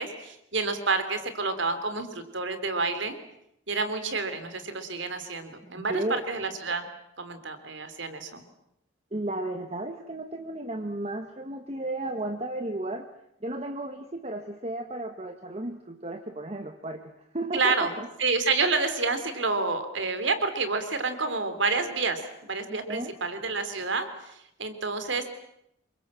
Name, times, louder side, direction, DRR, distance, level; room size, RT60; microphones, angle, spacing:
voice 1, 0.0-3.2 3.7-6.9 7.2-8.4 17.5-17.9 18.2-25.3, right 3 dB, 70° right, 10 dB, 3.3 m, -29 dB
voice 2, 5.7-6.2 9.1-13.1 13.4-18.1 22.7-23.1, right 1 dB, 30° right, 6 dB, 1.4 m, -34 dB
27.0 x 24.0 x 7.5 m, 0.78 s
head